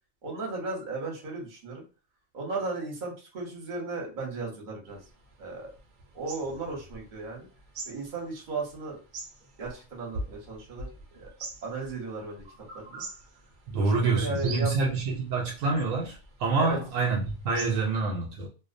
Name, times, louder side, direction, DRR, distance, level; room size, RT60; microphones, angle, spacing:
voice 1, 0.2-1.8 2.3-5.0 5.4-5.7 6.1-7.5 7.9-9.0 9.6-10.9 11.1-11.3 11.6-12.4 12.7-13.0 13.8-14.8 16.6-16.8, right 3 dB, 40° right, 0.9 m, -35 dB
sound 1, 4.9-17.8, right 2 dB, 90° right, 0.4 m, -44 dB
voice 2, 13.7-18.5, right 3 dB, 75° right, 0.9 m, -27 dB
2.5 x 2.0 x 2.4 m
omnidirectional pair, 1.4 m